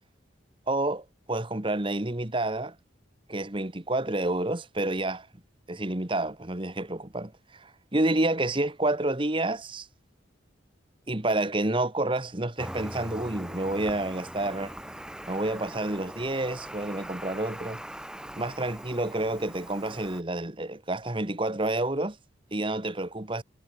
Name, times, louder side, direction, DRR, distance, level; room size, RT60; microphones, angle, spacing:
voice 1, 0.7-2.7 3.3-5.3 5.7-9.9 11.1-14.7 15.3-17.8 18.4-22.2 22.5-23.4, right 2 dB, 25° right, 1.5 m, -29 dB
Cricket, 12.6-20.2, equal, 5° right, 6.1 m, -41 dB
head